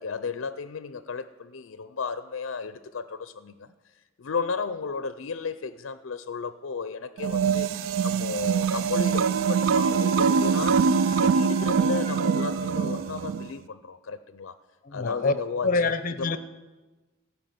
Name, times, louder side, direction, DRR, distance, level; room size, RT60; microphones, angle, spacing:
voice 1, 0.0-3.7 4.2-10.9 11.1-14.6 14.9-16.4, left 5 dB, 75° left, 13 dB, 0.5 m, -34 dB
sound 1, 7.2-13.5, right 6 dB, 80° right, 0.4 m, -24 dB
Dog, 8.1-13.2, right 2 dB, 35° right, 0.8 m, -44 dB
voice 2, 14.8-15.3 15.6-16.4, left 3 dB, 45° left, 11 dB, 0.8 m, -25 dB
15.5 x 5.7 x 9.3 m, 1.2 s
head